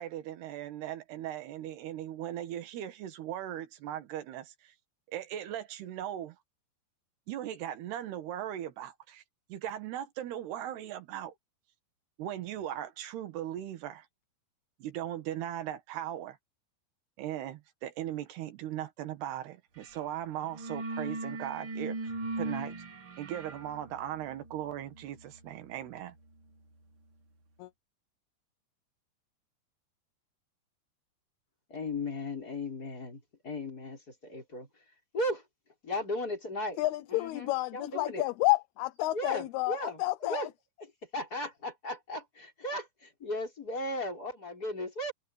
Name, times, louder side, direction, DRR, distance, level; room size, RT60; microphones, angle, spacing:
voice 1, 0.0-4.7 5.1-6.4 7.3-9.2 9.5-11.3 12.2-14.1 14.8-16.4 17.2-22.0 22.4-22.8 23.2-26.2, right 11 dB, 75° right, 3.7 m, -38 dB
sound 1, 19.8-20.0 20.3-27.0, right 2 dB, 45° right, 2.1 m, -40 dB
voice 2, 31.7-34.7 35.1-35.4 35.8-36.8 37.1-38.2 39.1-40.5 41.1-45.1, left 1 dB, 20° left, 5.7 m, -36 dB
voice 3, 36.8-40.5, left 19 dB, 75° left, 2.6 m, -30 dB
omnidirectional pair, 4.8 m